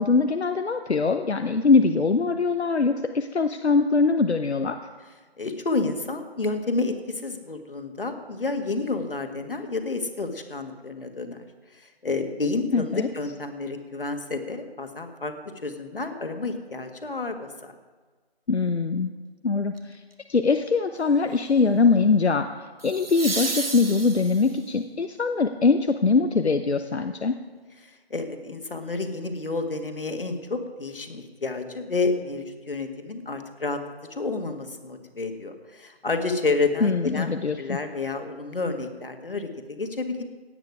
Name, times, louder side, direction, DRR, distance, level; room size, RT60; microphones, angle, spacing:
voice 1, 0.0-4.8 12.7-13.1 18.5-19.1 19.4-20.0 20.3-22.5 22.8-27.3 36.8-37.8, left 4 dB, 90° left, 7 dB, 0.9 m, -22 dB
voice 2, 5.4-11.4 11.7-15.3 15.6-17.4 17.6-17.7 27.8-33.8 34.1-37.3 37.6-40.2, left 3 dB, 55° left, 6 dB, 1.8 m, -30 dB
sound 1, 19.8-20.1 22.8-24.7 27.6-27.7, right 3 dB, 65° right, 1.6 m, -32 dB
17.0 x 9.3 x 4.8 m, 1.3 s
figure-of-eight pair, 170°, 32 cm